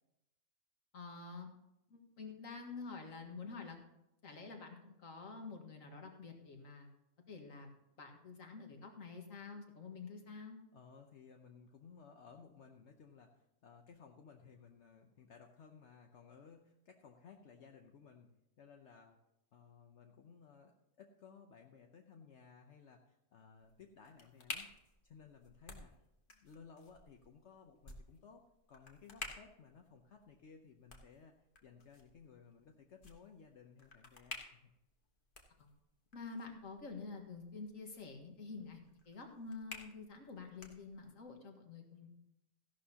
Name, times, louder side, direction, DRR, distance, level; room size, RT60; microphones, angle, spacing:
voice 1, 0.9-1.5 1.9-3.8 4.2-6.9 7.3-7.7 8.0-10.6 35.6-35.7 36.1-38.8 39.1-42.1, left 4 dB, 80° left, 3 dB, 2.0 m, -48 dB
voice 2, 10.7-19.2 19.5-24.7 25.0-25.9 26.3-28.4 28.7-31.3 31.6-34.7, left 6 dB, 65° left, 3 dB, 1.1 m, -59 dB
sound 1, 23.6-41.3, left 3 dB, 40° left, 1.5 m, -54 dB
15.0 x 11.5 x 2.9 m, 0.89 s
omnidirectional pair, 1.4 m